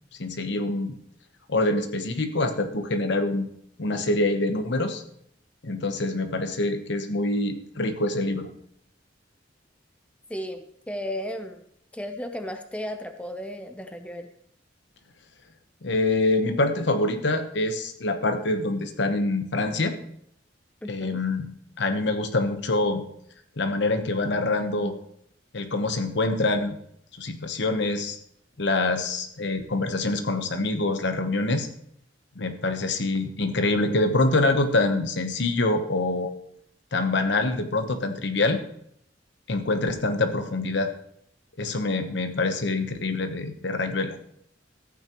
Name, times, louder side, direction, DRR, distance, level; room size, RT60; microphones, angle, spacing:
voice 1, 0.2-1.0 1.5-3.5 3.8-5.0 5.6-8.5 15.8-20.0 20.9-21.5 21.8-23.0 23.6-24.9 25.5-26.8 27.2-28.2 28.6-31.7 32.4-36.3 36.9-38.6 39.5-40.9 41.6-44.2, left 2 dB, 65° left, 7 dB, 1.0 m, -25 dB
voice 2, 10.3-11.6 11.9-14.3 20.8-21.2 24.8-24.9, equal, 5° left, 6 dB, 0.6 m, -34 dB
14.0 x 8.8 x 3.0 m, 0.69 s
head